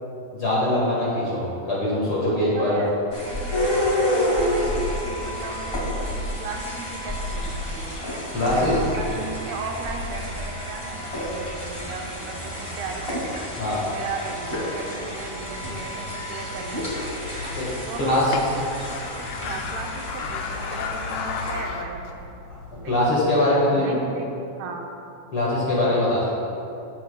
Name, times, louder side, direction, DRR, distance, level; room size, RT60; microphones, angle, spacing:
voice 1, 0.3-2.8 8.3-8.8 13.6-13.8 17.5-17.7 18.0-18.3 22.7-24.0 25.3-26.3, left 1 dB, 45° left, -7 dB, 1.9 m, -22 dB
voice 2, 2.3-3.6 4.1-8.0 8.5-13.4 13.9-16.9 17.9-22.3 22.8-24.9, right 4 dB, 85° right, 2 dB, 2.8 m, -37 dB
sound 1, 3.1-21.5, left 1 dB, 15° left, 1.0 m, -29 dB
sound 2, 16.8-23.1, left 5 dB, 80° left, 1.9 m, -35 dB
16.5 x 7.2 x 2.3 m, 2.7 s
omnidirectional pair, 4.4 m